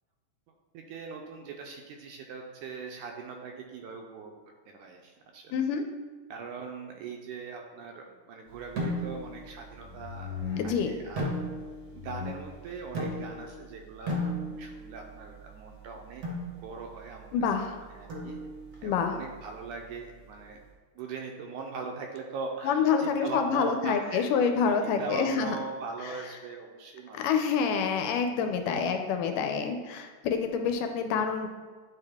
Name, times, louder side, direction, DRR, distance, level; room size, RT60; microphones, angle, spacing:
voice 1, 0.7-4.3 4.7-5.6 6.3-11.2 11.9-16.3 16.6-18.4 18.8-20.6 21.0-24.3 24.8-27.3 28.8-28.9, right 4 dB, 80° right, 2 dB, 1.9 m, -40 dB
voice 2, 5.5-5.8 10.6-10.9 17.3-17.8 18.8-19.2 22.6-25.6 27.1-31.5, left 6 dB, 80° left, 6 dB, 2.0 m, -27 dB
sound 1, 8.5-20.7, left 3 dB, 25° right, 0.9 m, -45 dB
sound 2, 8.8-9.4 11.2-11.9 12.9-13.5 14.1-14.9 16.2-16.6 18.1-18.7, equal, 60° right, 1.0 m, -33 dB
9.8 x 3.7 x 3.5 m, 1.5 s
omnidirectional pair, 3.9 m